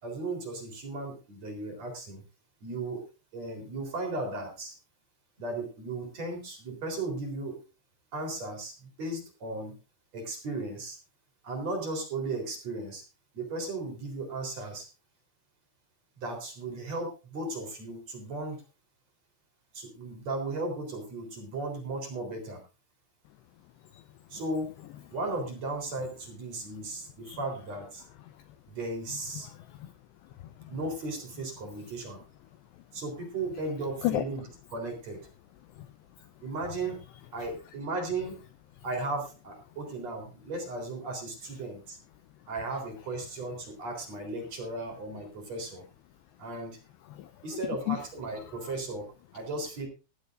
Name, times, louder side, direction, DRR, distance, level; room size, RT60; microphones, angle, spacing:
voice 1, 0.0-2.2 2.6-3.0 3.3-4.8 5.4-7.6 8.1-9.8 10.1-11.0 11.4-13.0 13.3-14.9 16.2-18.6 19.7-22.6 24.3-24.7 25.1-28.0 28.7-29.5 30.7-32.2 32.9-34.5 34.7-35.3 36.4-37.0 37.3-38.4 38.8-42.0 42.5-45.8 46.4-46.8 47.4-49.9, right 2 dB, 35° right, 3 dB, 4.3 m, -36 dB
voice 2, 29.4-29.9 30.4-30.8 34.0-34.2 35.7-35.9 36.2-36.3 47.1-47.6 47.9-48.0 48.5-48.7, left 15 dB, 85° left, 10 dB, 2.5 m, -34 dB
18.0 x 14.0 x 2.5 m, 0.31 s
omnidirectional pair, 5.8 m